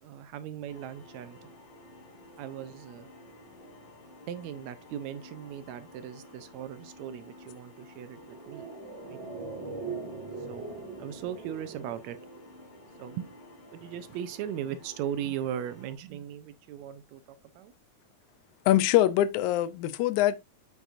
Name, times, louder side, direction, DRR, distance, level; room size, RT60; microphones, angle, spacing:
voice 1, 0.0-1.5 2.4-3.1 4.3-8.7 9.0-9.2 10.5-10.7 11.0-12.2 13.0-13.3 13.7-17.2 17.6-17.7, right 10 dB, 80° right, 1.7 m, -38 dB
sound 1, 0.7-15.9, left 1 dB, 55° left, 2.8 m, -52 dB
sound 2, 8.2-12.8 13.0-13.1, right 4 dB, 45° right, 2.2 m, -41 dB
voice 2, 18.7-20.4, left 13 dB, 80° left, 2.0 m, -23 dB
9.1 x 6.1 x 2.5 m
omnidirectional pair, 3.5 m